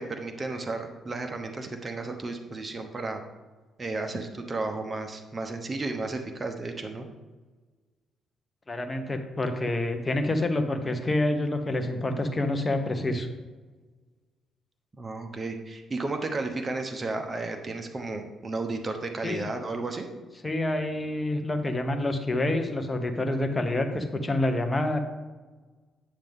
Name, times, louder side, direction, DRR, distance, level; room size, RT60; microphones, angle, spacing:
voice 1, 0.0-3.2 3.8-7.1 15.0-20.1, right 3 dB, 25° right, 4 dB, 1.0 m, -33 dB
voice 2, 8.7-13.3 19.2-19.4 20.4-25.0, left 1 dB, 20° left, 6 dB, 1.1 m, -27 dB
9.5 x 6.7 x 3.7 m, 1.3 s
cardioid pair, 90°, 0 cm